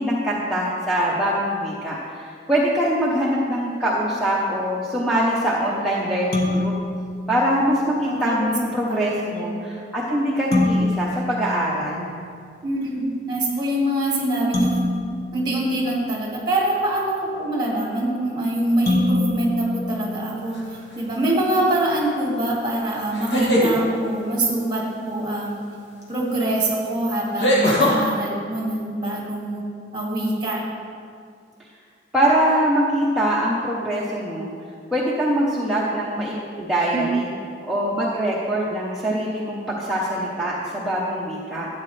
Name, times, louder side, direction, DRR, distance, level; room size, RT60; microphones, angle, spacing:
voice 1, 0.0-6.7 7.3-12.1 32.1-34.5 34.9-37.3 37.7-41.7, equal, ahead, -8 dB, 0.9 m, -23 dB
sound 1, 6.3-8.0 10.5-12.5 14.5-16.7 18.9-20.9, left 2 dB, 55° left, 1.7 m, -26 dB
voice 2, 8.0-9.7 12.6-14.8 15.3-20.6 20.9-25.6 26.1-29.6 29.9-30.6 36.9-37.1, right 1 dB, 25° right, -3 dB, 2.2 m, -24 dB
sound 2, 20.5-21.0 23.1-23.7 26.0-26.1 27.4-28.0, equal, 75° left, 2.2 m, -19 dB
12.5 x 8.6 x 3.3 m, 2.2 s
head